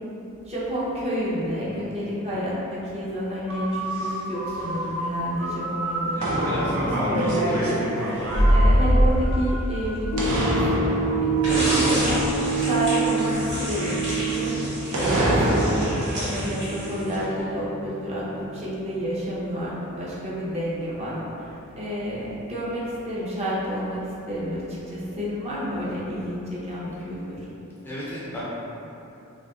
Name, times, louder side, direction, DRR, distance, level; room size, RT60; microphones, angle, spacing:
voice 1, 0.5-27.4, equal, 30° right, -7 dB, 0.6 m, -30 dB
sound 1, 3.5-9.9 10.2-12.7 13.1-16.3, equal, 90° right, 0.6 m, -24 dB
voice 2, 6.1-7.8 27.8-28.4, equal, 10° left, -9 dB, 0.4 m, -32 dB
sound 2, 10.1-18.5 19.0-19.1, right 4 dB, 75° left, 0.5 m, -28 dB
sound 3, 11.4-17.3, equal, 60° right, 1.3 m, -30 dB
2.7 x 2.5 x 3.5 m, 2.9 s
head